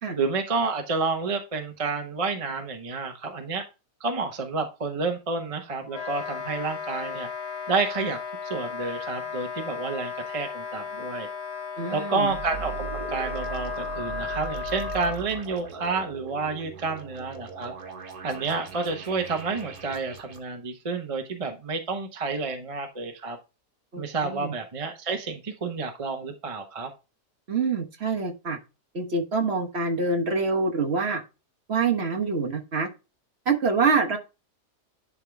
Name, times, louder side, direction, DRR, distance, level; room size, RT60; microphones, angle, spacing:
voice 1, 0.1-3.6 4.0-7.3 7.7-11.3 11.9-17.7 18.2-23.4 24.0-26.9, right 4 dB, 25° right, 5 dB, 0.8 m, -30 dB
Wind instrument woodwind instrument, 5.9-15.1, left 6 dB, 65° left, 1.5 m, -35 dB
voice 2, 11.8-12.3 23.9-24.5 27.5-28.6 28.9-31.2 31.7-32.9 33.4-34.2, right 4 dB, 45° right, 3 dB, 1.4 m, -26 dB
sound 1, 12.3-20.4, right 7 dB, 65° right, 1.8 m, -39 dB
11.0 x 3.7 x 3.4 m, 0.28 s
omnidirectional pair, 1.7 m